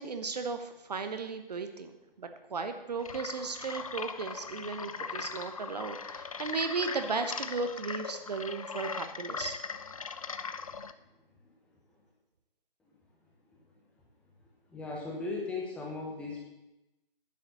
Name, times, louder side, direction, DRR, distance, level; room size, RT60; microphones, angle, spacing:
voice 1, 0.0-1.9 2.2-9.6, right 4 dB, 45° right, 7 dB, 1.0 m, -35 dB
sound 1, 3.0-10.9, left 5 dB, 35° left, 0.5 m, -39 dB
voice 2, 14.7-16.4, left 3 dB, 5° left, -3 dB, 1.2 m, -37 dB
10.5 x 7.6 x 7.0 m, 0.96 s
figure-of-eight pair, 150°, 29 cm